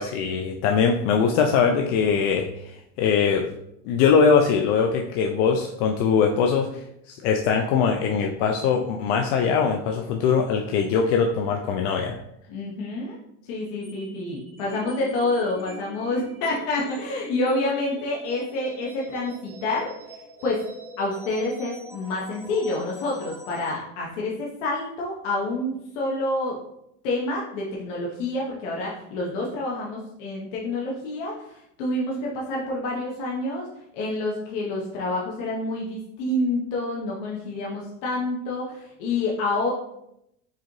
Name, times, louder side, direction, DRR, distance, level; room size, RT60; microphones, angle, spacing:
voice 1, 0.0-2.7 3.0-3.4 3.9-12.2, left 6 dB, 65° left, 2 dB, 0.5 m, -22 dB
voice 2, 12.5-13.2 13.4-19.9 20.4-20.6 21.0-26.6 27.0-33.7 33.9-39.7, left 2 dB, 85° left, -3 dB, 1.0 m, -28 dB
sound 1, 13.8-23.7, right 1 dB, 5° right, 0.7 m, -44 dB
4.8 x 2.8 x 3.0 m, 0.80 s
cardioid pair, 155°, 36 cm